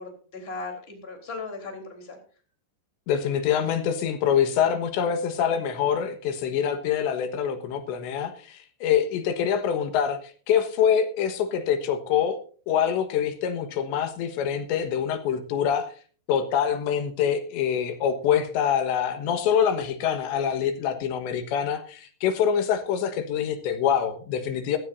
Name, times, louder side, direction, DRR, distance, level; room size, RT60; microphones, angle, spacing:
voice 1, 0.0-2.2, left 3 dB, 15° left, 3 dB, 3.3 m, -37 dB
voice 2, 3.1-10.2 10.5-12.4 12.7-15.9 16.3-24.8, left 8 dB, 85° left, 8 dB, 3.6 m, -25 dB
16.0 x 15.5 x 2.6 m, 0.41 s
omnidirectional pair, 5.1 m